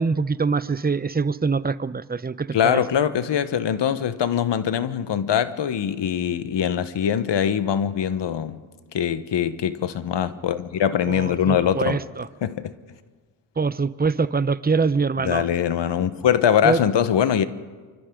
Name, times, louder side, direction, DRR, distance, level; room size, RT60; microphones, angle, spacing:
voice 1, 0.0-2.8 11.1-12.3 13.6-15.4 16.6-16.8, right 4 dB, 20° right, 0.9 m, -24 dB
voice 2, 2.5-8.6 8.9-12.0 12.4-12.7 15.2-17.4, left 9 dB, 65° left, 1.4 m, -22 dB
28.5 x 24.5 x 3.9 m
hypercardioid pair, 40°, 47 cm